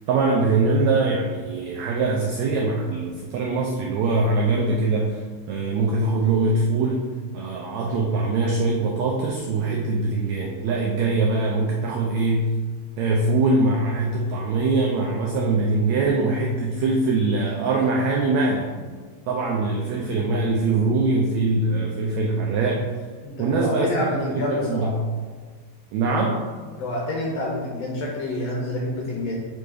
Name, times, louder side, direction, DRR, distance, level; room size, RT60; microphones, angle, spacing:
voice 1, 0.1-5.2 5.5-7.1 7.3-12.5 13.0-18.7 19.3-22.9 23.4-23.9 24.1-24.9 25.9-26.4, right 3 dB, 80° right, 0 dB, 1.6 m, -22 dB
voice 2, 23.2-24.9 26.8-29.4, left 1 dB, 65° left, -3 dB, 1.7 m, -28 dB
5.2 x 3.9 x 4.9 m, 1.5 s
omnidirectional pair, 3.8 m